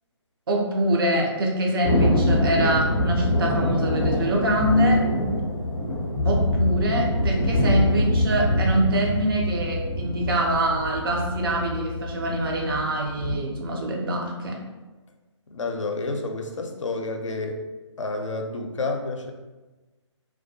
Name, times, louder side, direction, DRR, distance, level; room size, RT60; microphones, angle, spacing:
voice 1, 0.5-5.1 6.2-14.6, right 1 dB, 50° right, 0 dB, 0.5 m, -24 dB
Thunder, 1.8-13.4, left 1 dB, 20° left, 0.4 m, -24 dB
voice 2, 15.5-17.6 18.0-19.3, left 3 dB, 85° left, 3 dB, 0.4 m, -29 dB
2.2 x 2.2 x 2.6 m, 1.2 s
figure-of-eight pair, 150°, 16 cm